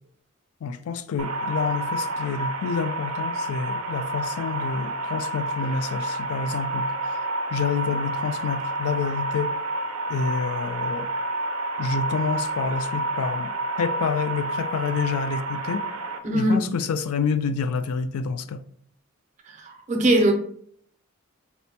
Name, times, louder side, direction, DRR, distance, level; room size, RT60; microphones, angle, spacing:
voice 1, 0.6-6.9 7.5-9.5 10.1-11.1 11.8-13.5 13.8-15.9 16.3-18.6, left 5 dB, 80° left, 0.3 m, -28 dB
sound 1, 1.2-16.2, right 2 dB, 80° right, 0.4 m, -29 dB
voice 2, 16.2-16.6 19.7-20.3, right 1 dB, 35° right, 0.5 m, -20 dB
4.2 x 2.1 x 2.8 m
head